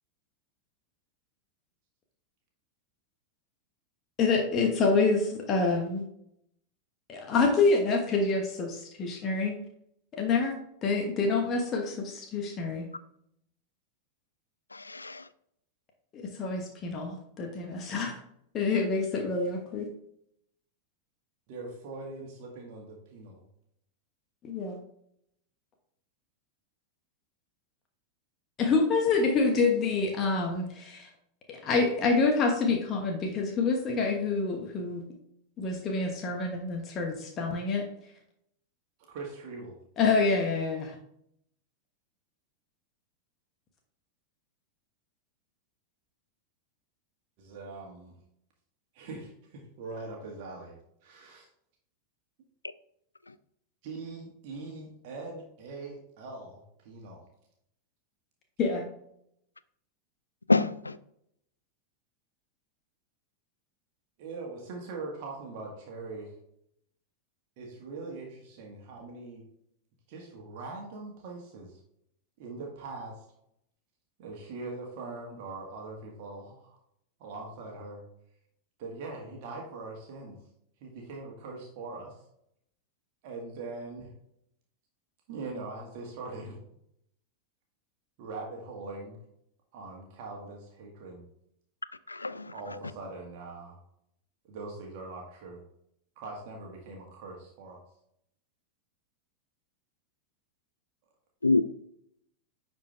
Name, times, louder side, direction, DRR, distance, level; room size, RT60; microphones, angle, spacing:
voice 1, 4.2-6.0 7.1-9.6 10.1-12.9 16.1-18.1 18.5-19.9 24.4-24.8 28.6-31.1 31.5-35.0 35.6-37.9 40.0-41.0 58.6-58.8, left 4 dB, 30° left, 1.2 m, -27 dB
voice 2, 14.9-15.2 60.5-60.9 92.1-92.5 101.4-101.6, left 3 dB, 80° left, 0.4 m, -25 dB
voice 3, 21.5-23.4 39.1-39.7 47.4-48.2 48.9-51.5 53.8-57.2 64.2-66.3 67.6-69.5 70.1-71.8 72.4-73.2 74.2-76.8 77.2-78.0 78.8-80.4 80.8-82.1 83.2-84.1 85.3-86.6 88.2-89.2 89.7-91.2 92.5-93.8 94.4-95.6 96.2-97.8, right 3 dB, 45° right, 1.8 m, -42 dB
10.5 x 4.5 x 3.4 m
figure-of-eight pair, 90°, 0 cm